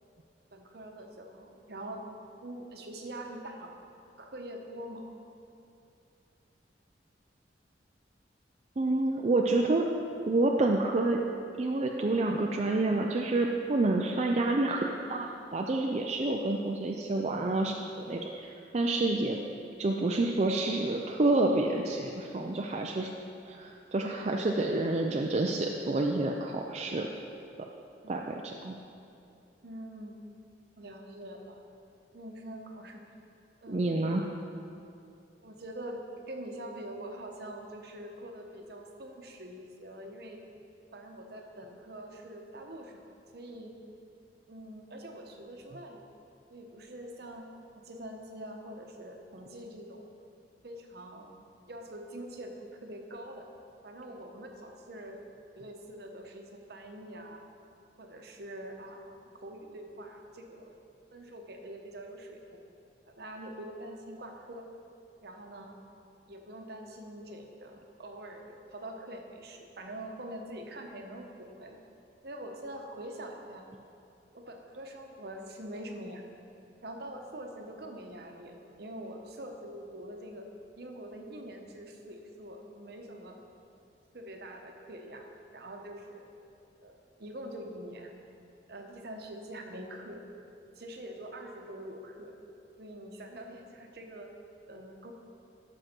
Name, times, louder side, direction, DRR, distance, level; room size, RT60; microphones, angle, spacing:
voice 1, 0.5-2.1 2.4-3.8 4.2-5.1 29.6-30.2 30.8-31.6 32.1-33.0 33.6-34.0 35.4-40.4 40.9-43.0 43.3-43.7 44.5-46.0 46.5-47.5 47.8-50.0 50.6-51.3 51.7-53.5 53.8-55.2 55.5-57.4 58.0-60.7 61.1-62.4 63.1-64.7 65.2-65.8 66.3-71.8 72.2-73.6 74.3-76.2 76.8-80.5 80.8-83.4 84.1-86.3 86.8-88.1 88.7-90.2 90.8-92.3 92.8-94.3 94.7-95.1, right 1 dB, 60° right, 3 dB, 1.0 m, -44 dB
voice 2, 8.8-9.9 10.2-11.2 11.6-19.4 19.8-23.1 23.5-27.1 28.1-28.8 33.7-34.2, right 2 dB, 40° right, 1 dB, 0.5 m, -28 dB
13.0 x 6.1 x 4.4 m, 2.6 s
head